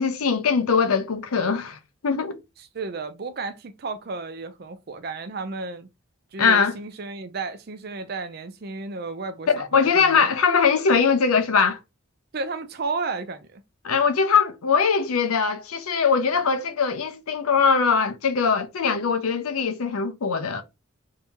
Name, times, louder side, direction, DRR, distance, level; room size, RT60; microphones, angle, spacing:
voice 1, 0.0-2.4 6.4-6.8 9.5-11.8 13.8-20.6, left 5 dB, 90° left, 0.6 m, -21 dB
voice 2, 2.7-5.9 6.3-10.3 12.3-13.6, right 3 dB, 45° right, 0.5 m, -33 dB
2.8 x 2.8 x 3.5 m
head